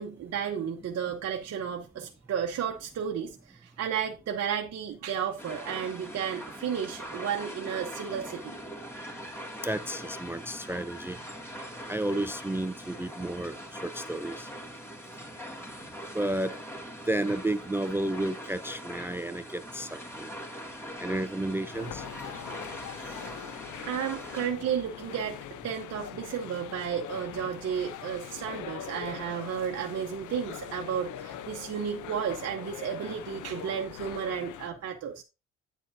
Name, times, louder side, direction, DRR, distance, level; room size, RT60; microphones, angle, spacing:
voice 1, 0.0-8.6 22.2-22.7 23.0-23.4 23.8-35.2, right 8 dB, 55° right, 0.9 m, -33 dB
sound 1, 5.4-24.5, equal, 10° left, 2.1 m, -42 dB
voice 2, 9.6-11.2 11.9-14.5 16.1-16.5 17.1-20.3 21.0-22.0, right 1 dB, 10° right, 0.4 m, -32 dB
sound 2, 21.7-34.7, left 10 dB, 80° left, 0.7 m, -42 dB
9.0 x 7.6 x 2.6 m
cardioid pair, 90°, 30 cm